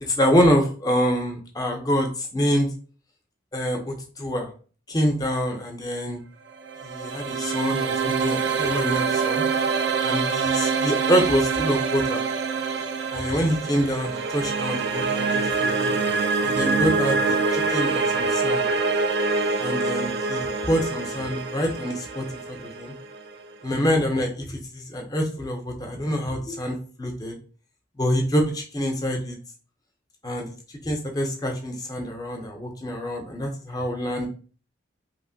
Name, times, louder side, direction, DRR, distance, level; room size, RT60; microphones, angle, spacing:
voice 1, 0.0-2.7 3.5-4.5 4.9-6.2 6.8-9.4 10.0-12.2 13.1-15.9 16.4-18.7 19.6-22.9 23.6-27.4 28.0-29.4 30.2-30.5 30.8-34.3, equal, 20° left, 2 dB, 0.4 m, -26 dB
sound 1, 6.5-23.6, right 4 dB, 60° right, 0.3 m, -25 dB
2.9 x 2.4 x 2.6 m, 0.40 s
head